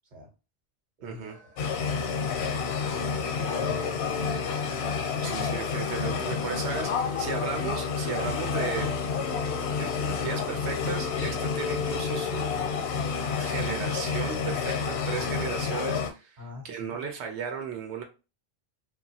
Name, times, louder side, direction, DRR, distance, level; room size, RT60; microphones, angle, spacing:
voice 1, 1.0-1.4 5.2-8.9 9.7-12.5 13.4-16.4 16.6-18.0, right 6 dB, 90° right, 3 dB, 0.9 m, -35 dB
sound 1, 1.2-2.0 3.2-9.7, right 1 dB, 10° right, 0.4 m, -48 dB
sound 2, 1.6-16.1, left 5 dB, 80° left, 0.8 m, -29 dB
voice 2, 3.0-4.5 5.2-5.5 16.4-17.1, left 2 dB, 50° right, 1 dB, 0.9 m, -44 dB
sound 3, 3.5-13.1, left 6 dB, 55° left, 0.5 m, -40 dB
2.8 x 2.2 x 2.7 m, 0.31 s
omnidirectional pair, 1.1 m